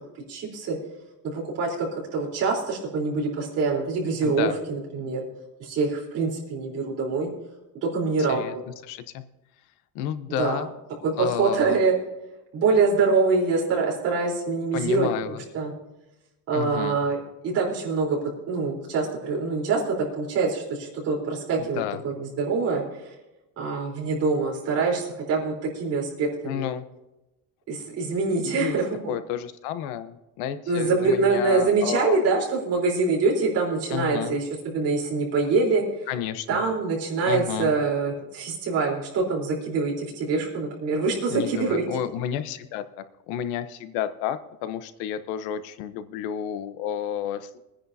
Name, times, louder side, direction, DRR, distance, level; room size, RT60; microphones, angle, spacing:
voice 1, 0.3-0.8 1.2-5.2 5.6-7.3 7.8-8.4 10.4-10.6 11.0-11.9 12.5-15.7 16.5-17.2 17.4-18.2 18.5-23.0 23.6-26.7 27.7-29.2 30.7-35.8 36.5-41.9, right 4 dB, 40° right, -2 dB, 3.8 m, -25 dB
voice 2, 4.2-4.5 8.2-8.5 8.9-9.2 9.9-10.7 11.2-11.8 14.7-15.4 16.5-17.0 21.6-22.0 26.4-26.9 28.4-28.8 29.1-32.2 33.9-34.3 36.1-36.6 37.3-37.7 41.3-42.8 43.3-47.6, left 10 dB, 85° left, 12 dB, 1.0 m, -31 dB
22.5 x 10.0 x 2.7 m, 1.0 s
cardioid pair, 175°, 37 cm